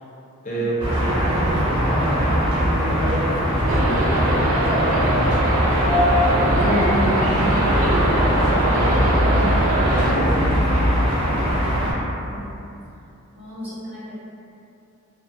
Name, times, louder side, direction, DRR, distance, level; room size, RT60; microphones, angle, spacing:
voice 1, 0.4-6.0 6.3-8.9 9.9-11.0, equal, 35° left, -7 dB, 0.6 m, -28 dB
sound 1, 0.8-11.9, equal, 25° right, 0.6 m, -21 dB
sound 2, 3.7-10.1, right 1 dB, 75° right, 0.4 m, -23 dB
voice 2, 12.1-12.5 13.3-14.1, equal, 10° right, -12 dB, 0.9 m, -37 dB
2.4 x 2.3 x 2.5 m, 2.7 s
head